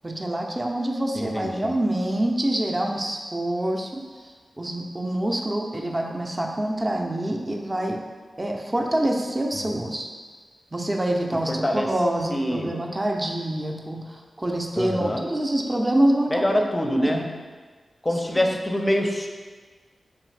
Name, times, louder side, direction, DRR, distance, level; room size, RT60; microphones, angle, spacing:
voice 1, 0.0-4.0 4.6-8.0 8.4-10.1 10.7-16.5 17.0-17.2 18.3-18.4, right 1 dB, 25° right, 1 dB, 0.5 m, -26 dB
voice 2, 1.1-1.7 9.5-9.9 11.5-11.9 12.3-12.7 14.8-15.2 16.3-17.3 18.0-19.3, equal, 20° left, 3 dB, 0.5 m, -25 dB
3.4 x 3.2 x 3.2 m, 1.5 s
cardioid pair, 40°, 0 cm